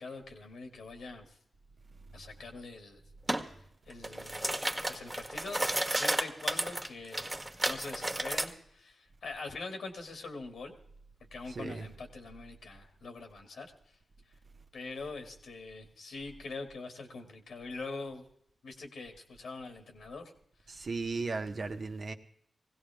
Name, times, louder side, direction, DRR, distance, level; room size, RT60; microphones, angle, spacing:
voice 1, 0.0-1.4 2.1-3.0 3.9-7.3 7.6-10.8 11.2-14.0 14.7-18.3 18.6-20.3, left 3 dB, 85° left, 4 dB, 2.3 m, -44 dB
sound 1, 3.3-3.5 3.9-8.5, right 1 dB, 20° right, 1.7 m, -32 dB
voice 2, 11.5-11.9 20.7-22.1, right 4 dB, 60° right, 5 dB, 1.4 m, -36 dB
19.5 x 16.5 x 3.6 m, 0.70 s
cardioid pair, 45°, 0 cm